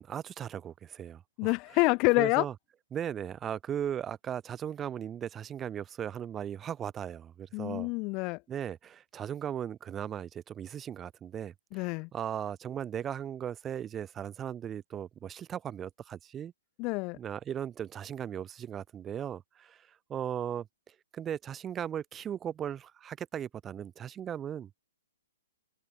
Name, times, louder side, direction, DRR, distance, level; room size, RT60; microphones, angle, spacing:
voice 1, 0.0-1.5 2.2-2.5 2.9-7.9 8.5-16.5 17.1-20.7 21.1-24.7, right 9 dB, 15° right, 1.3 m, -37 dB
voice 2, 1.4-2.5 7.5-8.4 11.7-12.1 16.8-17.2, left 27 dB, 30° left, 0.6 m, -27 dB
open air
figure-of-eight pair, 125°, 0 cm